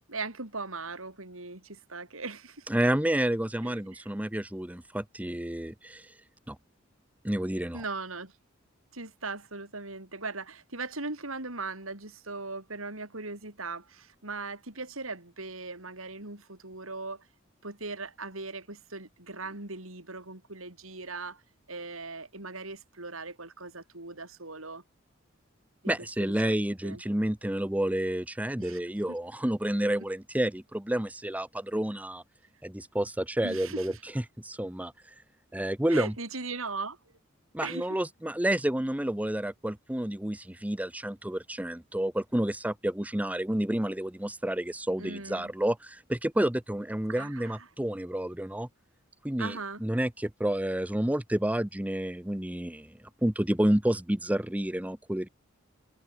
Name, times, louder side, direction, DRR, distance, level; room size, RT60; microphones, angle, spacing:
voice 1, 0.1-2.7 3.6-4.0 7.7-8.3 8.9-17.3 17.6-21.4 21.7-24.8 25.8-25.9 26.4-26.6 26.8-27.0 28.6-28.8 29.1-29.2 33.4-34.0 35.9-37.0 37.6-37.9 45.0-45.5 47.1-47.6 49.4-49.8, right 3 dB, 90° right, 6.2 m, -39 dB
voice 2, 2.7-6.1 6.5-6.6 7.2-7.8 25.9-32.2 32.6-34.9 35.5-36.1 37.5-48.7 49.2-52.9 53.2-55.3, right 1 dB, 5° right, 0.8 m, -30 dB
head